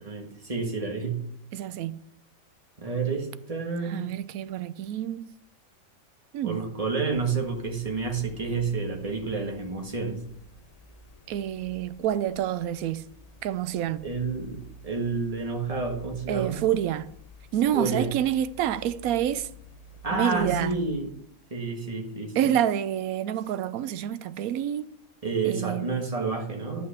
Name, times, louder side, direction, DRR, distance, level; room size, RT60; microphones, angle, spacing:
voice 1, 0.0-1.2 2.8-4.1 6.4-10.2 14.0-16.6 17.7-18.1 20.0-21.1 21.5-22.4 25.2-26.9, right 4 dB, 25° right, 1.7 m, -29 dB
voice 2, 1.5-2.0 3.8-5.3 6.3-6.7 11.3-13.0 13.4-14.0 16.3-17.1 17.5-19.5 20.1-20.8 22.3-24.9 25.4-25.9, right 11 dB, 85° right, 1.1 m, -28 dB
sound 1, 7.1-20.9, left 1 dB, 30° left, 0.9 m, -50 dB
11.0 x 5.7 x 5.7 m
omnidirectional pair, 1.5 m